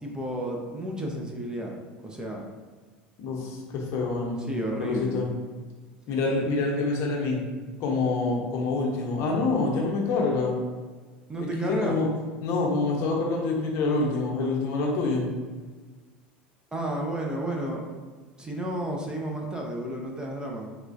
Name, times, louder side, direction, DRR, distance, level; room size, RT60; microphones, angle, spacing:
voice 1, 0.0-2.5 4.4-5.3 11.3-12.0 16.7-17.8 18.4-20.7, right 1 dB, 15° right, 0 dB, 0.6 m, -32 dB
voice 2, 3.2-4.4 4.8-5.3 6.1-7.4 7.8-10.6 11.4-12.1 12.4-15.3, left 3 dB, 55° left, -1 dB, 0.8 m, -26 dB
4.2 x 2.3 x 2.6 m, 1.4 s
hypercardioid pair, 90°, 5 cm